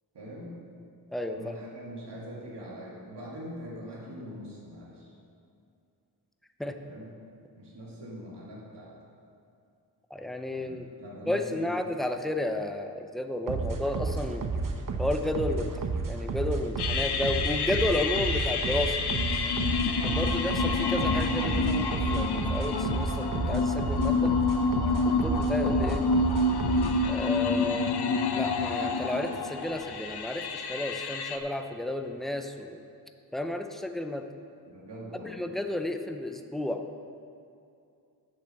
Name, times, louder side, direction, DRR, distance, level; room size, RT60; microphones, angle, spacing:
voice 1, 0.1-0.5 1.3-5.0 6.8-7.1 7.6-8.9 10.5-11.8 19.8-20.2 34.7-35.4, equal, 90° right, -4 dB, 2.5 m, -42 dB
voice 2, 1.1-1.6 6.6-6.8 10.1-10.9 11.3-14.4 15.0-19.0 20.0-24.3 24.9-26.0 27.0-28.0 28.3-32.8 33.3-34.2 35.2-36.8, left 1 dB, ahead, 6 dB, 0.5 m, -32 dB
sound 1, 13.5-27.1, right 4 dB, 55° right, 0.8 m, -32 dB
sound 2, 16.8-31.4, left 3 dB, 70° left, 0.8 m, -28 dB
8.3 x 7.1 x 6.8 m, 2.5 s
wide cardioid pair, 135°, 40 cm